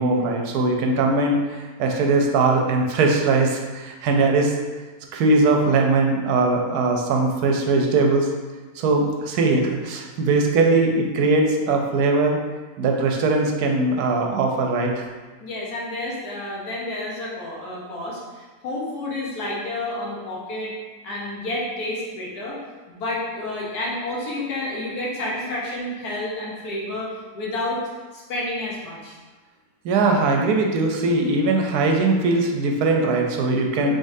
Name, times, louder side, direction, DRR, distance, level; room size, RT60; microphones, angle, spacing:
voice 1, 0.0-4.5 5.1-8.3 8.8-12.4 12.8-15.1 29.8-34.0, right 3 dB, 85° right, 2 dB, 1.1 m, -20 dB
voice 2, 15.4-20.8 21.0-22.6 22.9-27.8 28.1-29.2, left 1 dB, 85° left, -4 dB, 1.5 m, -30 dB
3.8 x 3.7 x 2.6 m, 1.3 s
omnidirectional pair, 1.6 m